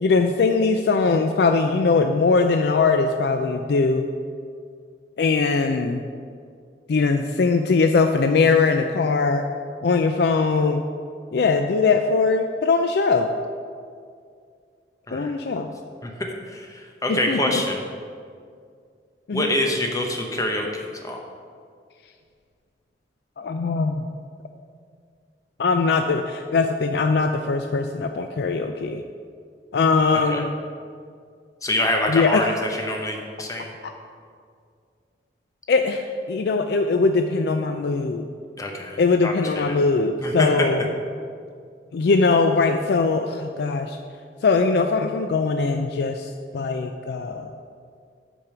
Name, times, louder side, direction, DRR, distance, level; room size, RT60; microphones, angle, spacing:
voice 1, 0.0-4.1 5.2-6.0 6.9-9.4 9.8-10.8 11.3-13.3 15.1-15.7 17.1-17.6 19.3-19.5 23.4-24.0 25.6-29.0 29.7-30.5 32.1-32.5 35.7-38.3 39.0-40.9 41.9-44.0 44.4-47.5, left 4 dB, 65° left, 6 dB, 0.4 m, -21 dB
voice 2, 16.5-17.8 19.3-20.7 21.0-21.2 30.3-30.4 31.6-33.7 38.6-39.8 40.2-40.7, left 1 dB, 20° left, 1 dB, 0.9 m, -25 dB
8.6 x 5.3 x 5.9 m, 2.2 s
head